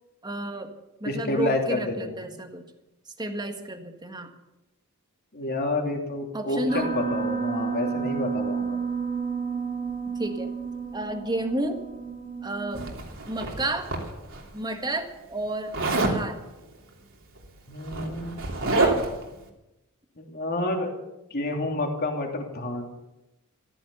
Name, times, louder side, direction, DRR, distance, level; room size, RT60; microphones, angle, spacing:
voice 1, 0.2-0.7 1.0-2.6 3.2-4.3 6.3-7.0 10.1-10.5 10.9-11.8 12.4-12.9 13.2-13.9 14.5-15.7 16.0-16.4 18.6-19.0, right 1 dB, 20° right, 5 dB, 1.7 m, -31 dB
voice 2, 1.0-2.1 5.3-8.8 17.7-18.4 20.2-20.9 21.3-22.9, left 2 dB, 45° left, 2 dB, 3.0 m, -29 dB
Piano, 6.7-12.9, right 5 dB, 40° right, 3.3 m, -31 dB
Zipper (clothing), 12.7-14.4 15.7-16.2 17.4-17.5 17.8-19.2, right 2 dB, 60° right, 3.1 m, -27 dB
14.5 x 14.0 x 7.0 m, 0.97 s
head